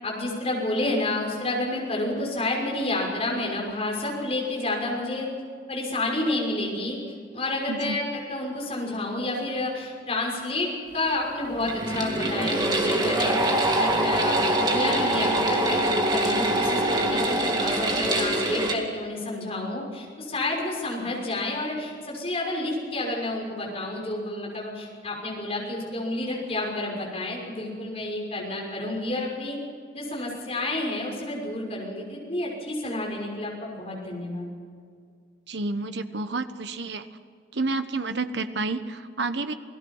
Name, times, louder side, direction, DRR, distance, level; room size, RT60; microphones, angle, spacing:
voice 1, 0.0-5.3 5.7-7.0 7.3-13.4 13.7-29.6 29.9-34.5, left 2 dB, 35° left, -1 dB, 6.1 m, -30 dB
voice 2, 7.7-8.0 35.5-37.0 37.5-39.5, right 3 dB, 75° right, 10 dB, 1.2 m, -29 dB
sound 1, 11.6-18.8, right 1 dB, 25° right, 2.2 m, -24 dB
28.0 x 18.5 x 5.6 m, 2.1 s
head